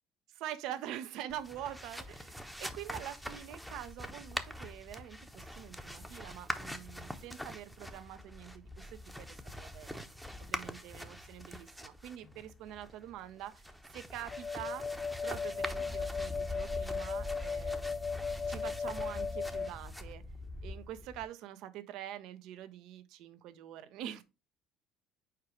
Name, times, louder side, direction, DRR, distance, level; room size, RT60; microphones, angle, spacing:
voice 1, 0.3-10.1 10.4-14.8 15.2-18.0 18.5-20.2 20.6-24.2, right 11 dB, 65° right, 0.7 m, -45 dB
sound 1, 1.3-21.2, left 1 dB, ahead, 0.9 m, -44 dB
sound 2, 14.3-19.7, left 5 dB, 40° left, 0.5 m, -37 dB
4.7 x 4.6 x 4.8 m
hypercardioid pair, 70°, 0 cm